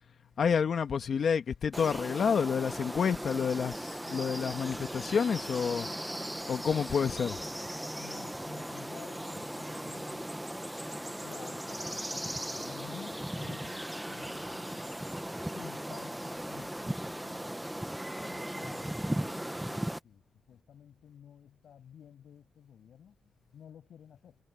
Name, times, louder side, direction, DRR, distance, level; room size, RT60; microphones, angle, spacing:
voice 1, 0.4-5.9 6.5-7.4, left 6 dB, 60° left, 1.4 m, -29 dB
sound 1, 1.7-20.0, right 1 dB, 5° right, 0.9 m, -38 dB
voice 2, 8.0-10.3 11.2-14.9 15.4-17.6 18.2-20.2 20.5-23.1 23.5-24.4, left 9 dB, 75° left, 7.6 m, -52 dB
cardioid pair, 110°, 0 cm